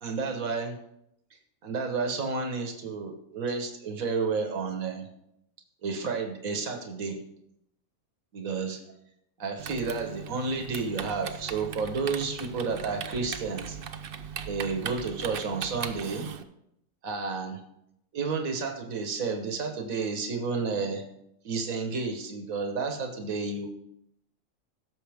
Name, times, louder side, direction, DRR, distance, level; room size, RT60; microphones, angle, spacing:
voice 1, 0.0-0.8 1.6-5.1 5.8-7.2 8.3-8.8 9.4-13.8 14.4-16.3 17.0-17.6 18.1-21.0 21.4-23.7, right 4 dB, 80° right, 4 dB, 1.7 m, -31 dB
Typing, 9.6-16.4, right 8 dB, 55° right, 0.7 m, -39 dB
17.0 x 6.9 x 3.5 m, 0.79 s
omnidirectional pair, 1.4 m